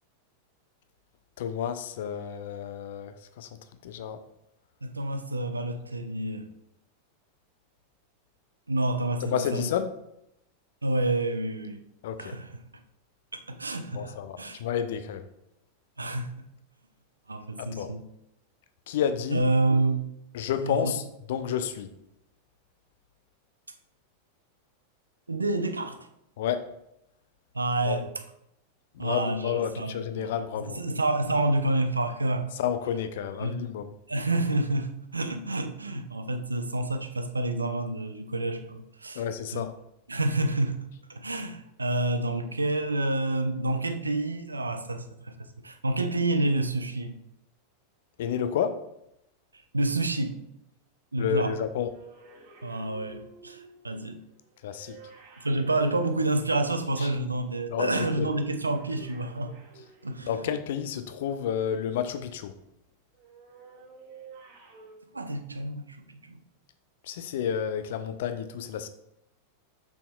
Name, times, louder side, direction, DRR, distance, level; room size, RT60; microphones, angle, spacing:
voice 1, 1.4-3.5 3.8-4.2 9.2-9.9 12.0-12.4 13.9-15.3 17.6-17.9 18.9-19.4 20.3-21.9 26.4-26.7 27.8-28.1 28.9-30.8 32.5-33.9 39.2-39.8 48.2-48.8 51.2-51.9 54.6-55.0 57.0-57.1 57.7-58.3 60.3-62.6 67.0-68.9, left 8 dB, 55° left, 11 dB, 0.5 m, -30 dB
voice 2, 4.8-6.5 8.7-9.7 10.8-11.8 12.2-12.6 13.3-14.6 16.0-16.4 17.3-18.0 19.3-20.0 20.6-20.9 25.3-26.0 27.5-28.1 29.0-30.3 30.6-32.5 33.4-33.6 34.1-39.2 39.5-39.7 40.1-45.3 45.6-47.1 49.7-50.4 51.1-51.5 52.6-54.2 55.4-59.5 60.0-60.4 65.1-66.4, right 2 dB, 80° right, 8 dB, 0.5 m, -28 dB
sound 1, 51.9-56.9 58.1-60.7 63.1-64.9, right 4 dB, 45° right, 1.7 m, -52 dB
7.0 x 5.9 x 2.3 m, 0.82 s
figure-of-eight pair, 90°, 0 cm